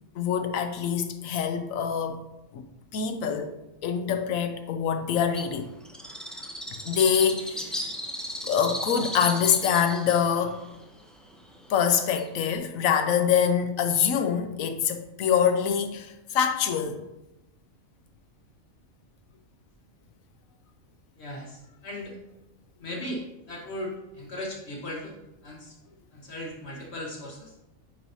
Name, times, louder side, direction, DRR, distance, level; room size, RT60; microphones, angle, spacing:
voice 1, 0.2-2.2 2.5-2.6 2.9-3.5 3.8-5.7 6.8-7.8 8.4-10.6 11.7-17.0, left 7 dB, 85° left, 1.1 m, -25 dB
Bird, 5.3-12.6, equal, ahead, 0.4 m, -37 dB
voice 2, 21.2-22.1 22.8-25.2 25.4-25.7 26.1-27.5, left 1 dB, 55° left, 1.1 m, -37 dB
9.3 x 4.6 x 2.8 m
omnidirectional pair, 1.4 m